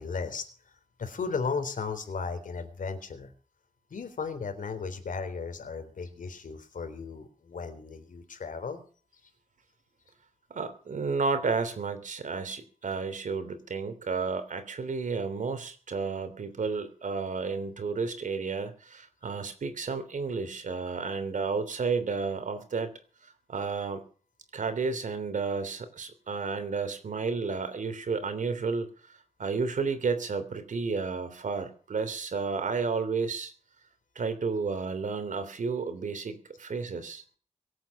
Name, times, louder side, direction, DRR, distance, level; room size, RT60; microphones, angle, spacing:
voice 1, 0.0-3.3 3.9-8.8, left 5 dB, 80° left, 8 dB, 3.8 m, -35 dB
voice 2, 10.5-22.9 23.2-24.0 24.5-28.9 29.4-33.5 34.1-37.2, right 4 dB, 70° right, 10 dB, 3.2 m, -32 dB
24.0 x 8.9 x 6.2 m, 0.40 s
wide cardioid pair, 180°, 14 cm